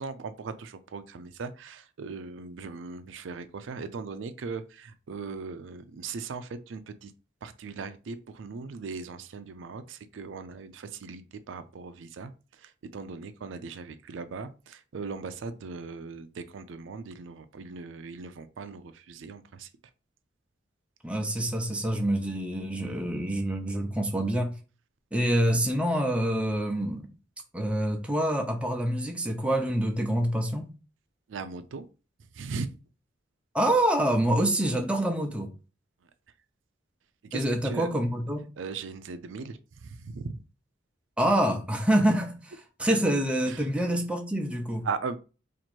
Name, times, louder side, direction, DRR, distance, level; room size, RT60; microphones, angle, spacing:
voice 1, 0.0-7.1 7.4-19.7 25.5-25.6 31.3-31.9 32.3-32.8 36.0-36.1 37.2-37.9 38.6-40.4 43.4-43.7 44.8-45.2, right 4 dB, 85° right, 0.4 m, -39 dB
voice 2, 21.0-24.6 25.1-27.1 27.5-30.7 33.5-35.5 37.3-38.5 41.2-42.5 42.8-44.8, right 1 dB, 5° right, 0.5 m, -26 dB
2.9 x 2.5 x 4.3 m
head